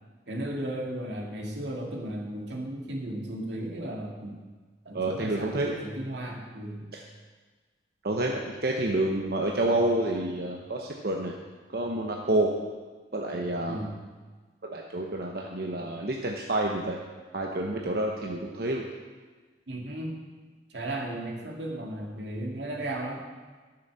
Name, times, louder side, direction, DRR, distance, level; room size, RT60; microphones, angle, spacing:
voice 1, 0.3-4.4 4.8-6.9 13.7-14.0 19.7-20.2 20.7-23.2, right 1 dB, 85° right, 0 dB, 2.1 m, -35 dB
voice 2, 4.9-5.8 6.9-7.0 8.0-11.3 11.7-12.5 13.1-13.9 14.6-17.0 17.3-18.9, right 1 dB, 60° right, 0 dB, 1.0 m, -28 dB
12.5 x 7.0 x 6.9 m, 1.4 s
head